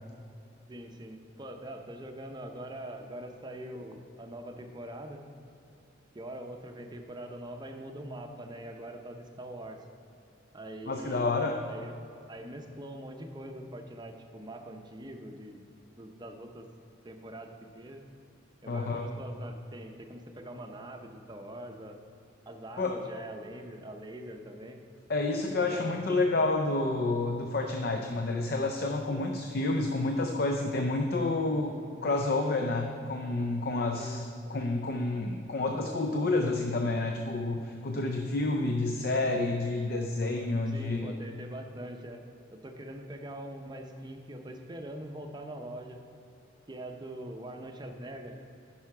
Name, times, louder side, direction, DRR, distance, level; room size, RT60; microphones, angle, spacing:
voice 1, 0.7-5.2 6.1-9.8 10.5-11.3 11.7-11.9 12.3-15.6 16.0-16.7 17.0-18.0 18.6-22.0 22.5-24.8 25.5-26.3 34.0-34.2 34.5-34.6 40.7-42.2 42.5-46.0 46.7-48.5, right 1 dB, 20° right, 4 dB, 0.6 m, -43 dB
voice 2, 10.9-11.6 18.7-19.1 22.8-23.1 25.1-31.7 32.0-41.1, left 2 dB, 50° left, 4 dB, 0.5 m, -29 dB
10.5 x 5.6 x 4.8 m, 2.6 s
head